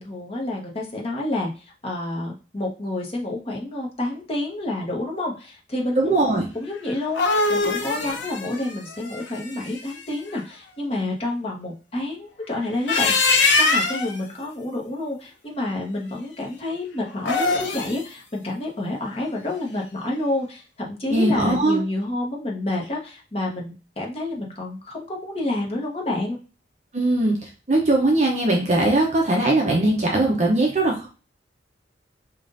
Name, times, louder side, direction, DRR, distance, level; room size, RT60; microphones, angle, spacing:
voice 1, 0.0-1.5 1.8-6.2 6.5-26.4, left 2 dB, 35° left, -1 dB, 1.0 m, -29 dB
voice 2, 6.0-6.5 21.1-21.8 26.9-31.1, right 2 dB, 40° right, -1 dB, 0.7 m, -20 dB
sound 1, 6.9-9.9 12.7-14.2 17.1-18.0, left 3 dB, 80° left, 0.8 m, -22 dB
5.4 x 2.5 x 2.6 m, 0.33 s
head